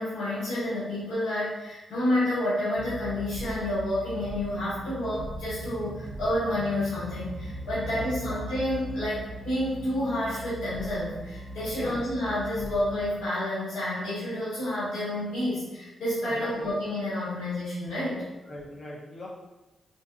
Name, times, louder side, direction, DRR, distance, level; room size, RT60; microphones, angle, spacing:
voice 1, 0.0-18.2, left 1 dB, 85° left, -11 dB, 1.4 m, -29 dB
sound 1, 2.8-13.1, right 1 dB, 70° right, 0.6 m, -39 dB
voice 2, 7.8-8.4 11.7-12.0 16.2-16.7 18.5-19.3, left 1 dB, 50° left, -4 dB, 0.6 m, -41 dB
2.6 x 2.5 x 2.3 m, 1.1 s
supercardioid pair, 55°, 0 cm